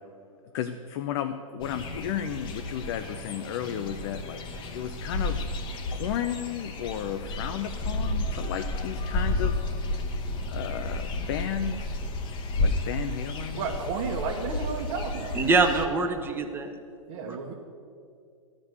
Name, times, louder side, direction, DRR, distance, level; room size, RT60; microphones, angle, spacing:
voice 1, 0.5-4.4 4.7-5.4 5.9-9.6 10.5-12.0 12.6-13.7, left 10 dB, 45° left, 7 dB, 0.6 m, -33 dB
sound 1, 1.6-15.9, left 2 dB, 25° left, 1.0 m, -32 dB
voice 2, 13.5-15.4 17.1-17.5, right 5 dB, 50° right, -2 dB, 1.3 m, -32 dB
voice 3, 15.3-16.7 17.2-17.4, right 3 dB, 10° right, 4 dB, 1.0 m, -24 dB
13.5 x 5.3 x 8.2 m, 2.3 s
hypercardioid pair, 110°, 18 cm